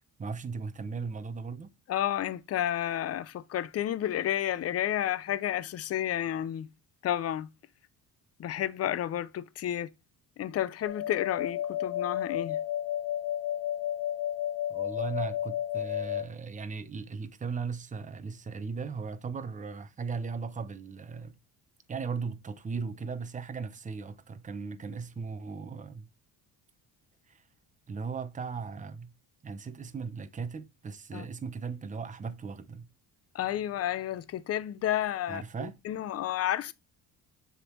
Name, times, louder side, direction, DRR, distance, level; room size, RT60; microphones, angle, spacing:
voice 1, 0.2-1.7 14.7-21.4 21.9-26.1 27.3-27.4 27.9-29.1 29.4-32.9 35.3-35.8, right 5 dB, 20° right, 0.7 m, -37 dB
voice 2, 1.9-6.7 7.0-7.5 8.4-9.9 10.4-12.6 31.1-31.3 33.3-36.7, left 11 dB, 40° left, 0.5 m, -31 dB
sound 1, 10.8-16.2, left 11 dB, 75° left, 1.3 m, -32 dB
6.9 x 3.7 x 4.4 m
cardioid pair, 115°, 38 cm